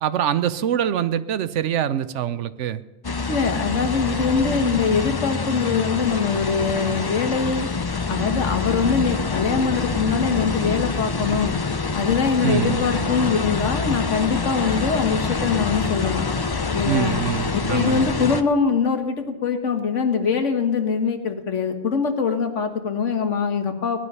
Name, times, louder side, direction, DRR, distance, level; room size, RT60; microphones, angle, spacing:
voice 1, 0.0-2.8 12.4-12.8 16.9-18.0, right 10 dB, 75° right, 15 dB, 1.0 m, -24 dB
sound 1, 3.0-18.4, left 4 dB, 30° left, 0.5 m, -26 dB
voice 2, 3.3-7.7 8.1-11.6 11.9-16.3 16.7-17.2 17.5-24.0, left 5 dB, 80° left, 6 dB, 1.7 m, -23 dB
18.0 x 11.5 x 5.5 m, 1.1 s
omnidirectional pair, 1.2 m